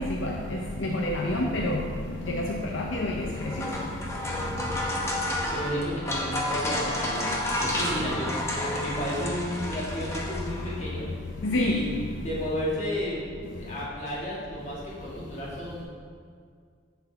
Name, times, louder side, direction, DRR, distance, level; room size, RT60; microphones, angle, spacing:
voice 1, 0.0-1.9 2.2-3.7 11.4-11.9, left 1 dB, 65° left, 0 dB, 0.6 m, -28 dB
sound 1, 3.2-10.8, left 1 dB, 15° left, 0.8 m, -31 dB
voice 2, 5.0-11.1 11.5-11.9 12.2-13.3 13.6-15.8, equal, 35° left, -6 dB, 1.9 m, -33 dB
8.1 x 7.4 x 3.4 m, 2.1 s
head